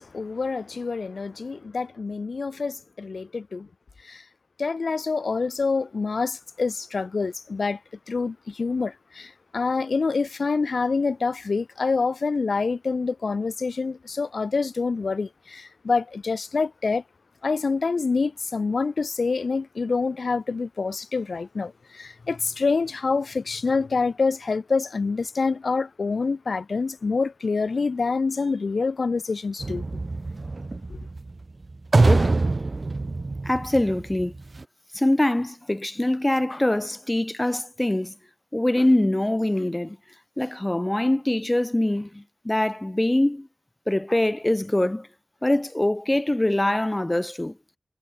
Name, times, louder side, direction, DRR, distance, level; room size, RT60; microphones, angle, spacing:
voice 1, 0.0-3.7 4.0-4.2 4.6-7.8 8.1-17.0 17.4-29.8 30.9-31.0, left 4 dB, 75° left, 2.0 m, -26 dB
sound 1, 29.6-34.6, right 3 dB, 50° right, 0.8 m, -24 dB
voice 2, 33.4-34.3 34.9-38.1 38.5-40.0 40.4-43.5 43.9-45.1 45.4-47.5, left 1 dB, 20° left, 1.6 m, -23 dB
wide cardioid pair, 75°, 0 cm